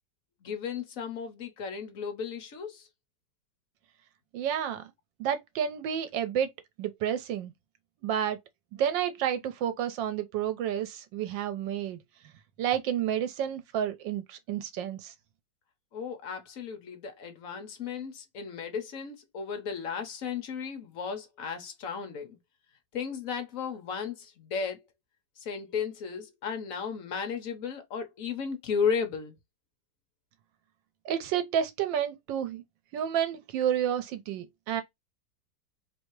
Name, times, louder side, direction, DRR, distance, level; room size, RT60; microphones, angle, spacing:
voice 1, 0.4-2.9 15.9-22.4 22.9-24.8 25.4-29.4, left 6 dB, 55° left, 1.1 m, -34 dB
voice 2, 4.3-4.9 5.2-6.5 6.8-7.5 8.0-8.4 8.7-12.0 12.6-15.1 31.0-32.6 32.9-34.8, right 9 dB, 80° right, 1.3 m, -30 dB
3.2 x 2.7 x 4.5 m
omnidirectional pair, 2.0 m